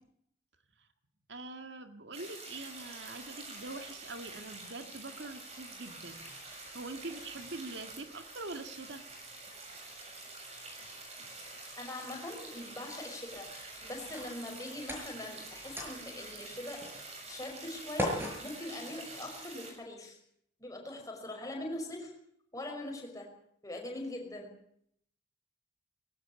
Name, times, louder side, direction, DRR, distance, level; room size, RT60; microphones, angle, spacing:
voice 1, 1.3-9.0 10.8-10.9 11.2-11.3, right 2 dB, 60° right, 8 dB, 1.8 m, -44 dB
sound 1, 2.1-19.7, right 2 dB, 35° right, 7.1 m, -47 dB
sound 2, 2.5-19.6, equal, 10° right, 5.7 m, -46 dB
voice 2, 11.3-16.8 17.3-20.2 20.6-22.1 22.5-23.3 23.6-24.5, left 1 dB, 15° left, 1 dB, 5.6 m, -42 dB
20.0 x 17.0 x 8.7 m, 0.70 s
head